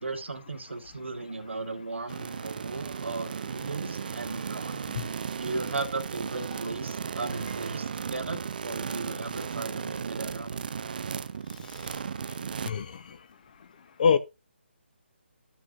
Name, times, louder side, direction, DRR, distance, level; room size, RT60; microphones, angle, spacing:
voice 1, 0.0-4.8 5.3-10.7, right 3 dB, 75° right, 1.3 m, -36 dB
sound 1, 2.1-12.7, right 6 dB, 45° right, 0.4 m, -35 dB
sound 2, 4.7-5.2 5.5-6.0 6.4-6.8 7.2-7.9, left 5 dB, 25° left, 1.4 m, -51 dB
voice 2, 12.6-13.2 14.0-14.2, left 6 dB, 45° left, 0.8 m, -25 dB
14.0 x 6.0 x 2.4 m
figure-of-eight pair, 150°, 6 cm